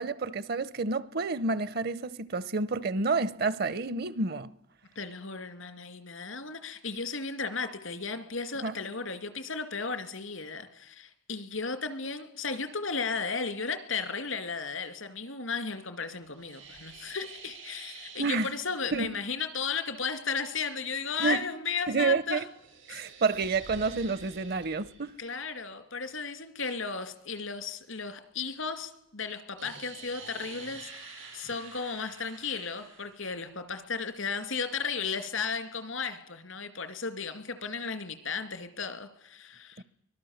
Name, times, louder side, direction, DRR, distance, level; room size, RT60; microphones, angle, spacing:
voice 1, 0.0-4.5 8.6-8.7 18.2-18.5 18.9-19.1 21.2-21.4 21.9-22.4 22.9-25.2 39.8-39.9, right 4 dB, 50° right, 0.8 m, -29 dB
voice 2, 4.9-22.4 22.9-23.0 25.2-30.9 31.3-39.8, left 5 dB, 90° left, 2.5 m, -35 dB
sound 1, 16.3-18.8 22.4-25.1 29.6-33.2, right 5 dB, 80° right, 7.2 m, -48 dB
24.0 x 18.5 x 7.2 m
head